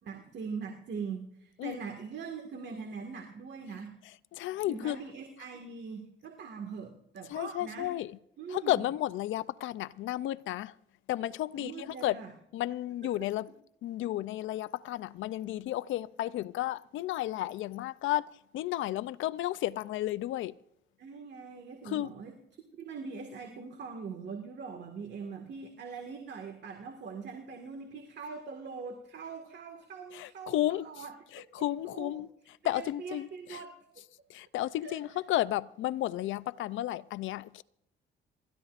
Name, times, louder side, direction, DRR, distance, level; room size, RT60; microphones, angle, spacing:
voice 1, 0.0-4.0 4.7-8.0 8.4-8.8 11.5-12.3 13.0-13.3 21.0-31.7 31.9-32.1 32.6-33.8 34.8-35.2, right 5 dB, 60° right, 1.9 m, -42 dB
voice 2, 4.0-5.0 5.4-5.5 7.3-8.2 8.5-10.7 11.1-12.2 12.5-13.5 13.8-18.3 18.5-20.5 21.9-22.1 30.1-33.6 34.3-37.6, left 14 dB, 75° left, 0.5 m, -33 dB
27.5 x 13.0 x 2.5 m
cardioid pair, 90°, 20 cm